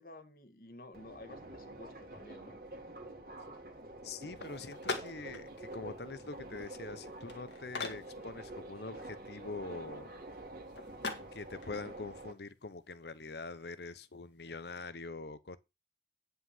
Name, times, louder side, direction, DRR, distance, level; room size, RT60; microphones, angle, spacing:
voice 1, 0.0-2.6, left 2 dB, 55° left, 1.5 m, -52 dB
Subway metro underground, 0.9-12.3, right 2 dB, 50° right, 1.8 m, -48 dB
voice 2, 4.0-10.1 11.3-15.6, left 3 dB, 70° left, 0.8 m, -44 dB
sound 1, 4.4-14.8, left 3 dB, 85° left, 2.1 m, -46 dB
9.7 x 5.7 x 5.6 m
head